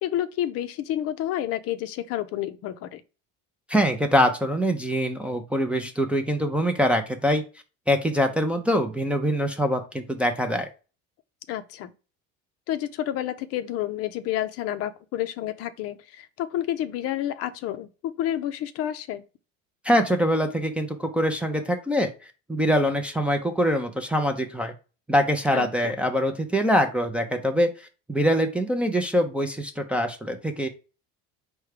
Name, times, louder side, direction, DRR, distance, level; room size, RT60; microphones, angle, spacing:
voice 1, 0.0-3.0 11.5-11.9 12.7-19.2 25.5-25.9, left 12 dB, 55° left, 0.5 m, -30 dB
voice 2, 3.7-7.4 7.9-10.7 19.8-22.1 22.5-24.7 25.1-30.7, equal, 5° right, 0.4 m, -24 dB
4.6 x 2.2 x 4.8 m
cardioid pair, 130°, 29 cm